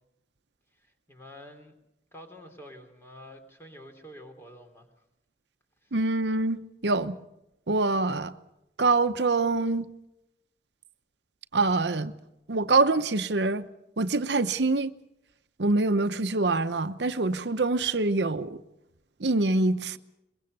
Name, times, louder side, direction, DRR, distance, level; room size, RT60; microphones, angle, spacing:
voice 1, 0.7-1.8 2.1-4.9 5.8-5.9, equal, 15° left, 3.2 m, -48 dB
voice 2, 5.9-7.2 7.7-8.3 8.8-9.9 11.5-12.1 12.5-13.6 14.0-14.9 15.6-18.6 19.2-20.0, right 3 dB, 75° right, 0.9 m, -25 dB
23.0 x 22.0 x 6.7 m
head